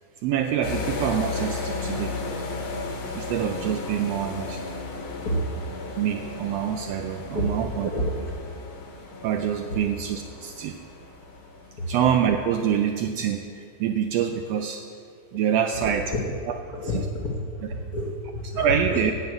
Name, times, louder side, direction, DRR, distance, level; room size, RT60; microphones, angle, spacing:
voice 1, 0.2-2.2 3.1-4.6 6.0-7.9 9.2-10.8 11.9-14.8 15.3-16.1 16.5-16.6 18.6-19.1, right 9 dB, 80° right, 5 dB, 1.4 m, -26 dB
sound 1, 0.6-12.7, left 3 dB, 55° left, 1.7 m, -35 dB
voice 2, 7.3-8.2 8.5-8.6 9.7-9.8 11.8-11.9 15.8-16.4 16.7-19.1, equal, 85° left, -2 dB, 0.8 m, -30 dB
9.5 x 7.7 x 7.8 m, 2.3 s
omnidirectional pair, 3.3 m